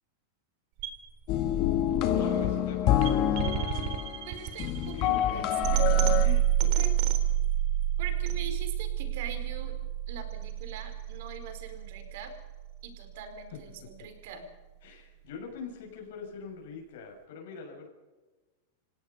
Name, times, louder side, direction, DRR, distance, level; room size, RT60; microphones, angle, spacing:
sound 1, 0.8-12.8, right 12 dB, 40° right, 3.8 m, -29 dB
sound 2, 1.3-6.3, left 10 dB, 35° left, 1.8 m, -27 dB
voice 1, 2.1-3.4 4.9-5.5 6.2-7.0 13.5-13.6 14.8-17.9, left 5 dB, 65° left, 1 dB, 6.8 m, -42 dB
voice 2, 4.3-5.9 8.0-9.8 10.1-12.3 12.8-14.4, right 6 dB, 60° right, 7 dB, 4.8 m, -42 dB
28.0 x 17.5 x 5.5 m, 1.2 s
supercardioid pair, 160°, 0 cm